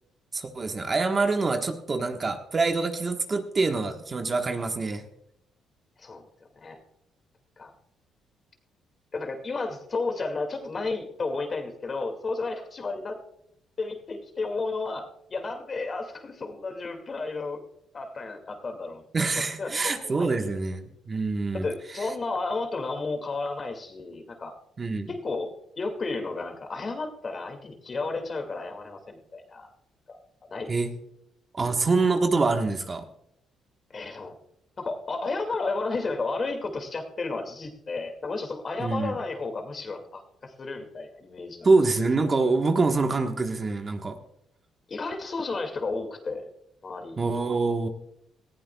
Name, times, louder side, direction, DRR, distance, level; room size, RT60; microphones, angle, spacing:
voice 1, 0.3-5.0 19.1-21.7 21.9-22.1 24.8-25.1 30.7-30.9 31.5-33.0 38.8-39.1 41.6-44.2 47.2-47.9, right 3 dB, 35° right, 5 dB, 1.2 m, -25 dB
voice 2, 9.1-13.2 13.8-17.6 17.9-19.0 19.6-20.4 21.5-24.5 25.1-25.5 25.8-29.7 30.1-30.2 30.5-30.7 33.9-34.3 34.8-41.7 44.9-46.4 46.8-47.4, left 3 dB, 40° left, 5 dB, 2.1 m, -32 dB
19.0 x 14.5 x 2.3 m, 0.75 s
cardioid pair, 90°, 0 cm